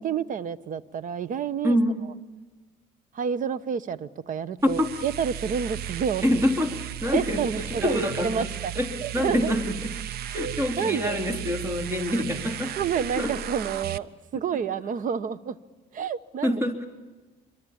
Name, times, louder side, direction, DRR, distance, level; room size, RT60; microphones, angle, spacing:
voice 1, 0.0-1.8 3.1-6.2 7.1-8.7 9.0-9.5 10.4-11.2 12.8-14.1 14.3-15.6 15.9-16.6, right 7 dB, 50° right, 17 dB, 1.1 m, -29 dB
voice 2, 1.6-2.0 4.6-4.9 6.2-8.5 8.7-9.9 10.3-13.4 16.4-16.9, left 1 dB, 15° right, 6 dB, 3.3 m, -26 dB
sound 1, 4.6-14.0, right 10 dB, 70° right, 0.9 m, -35 dB
26.0 x 23.0 x 8.7 m, 1.2 s
cardioid pair, 110°, 17 cm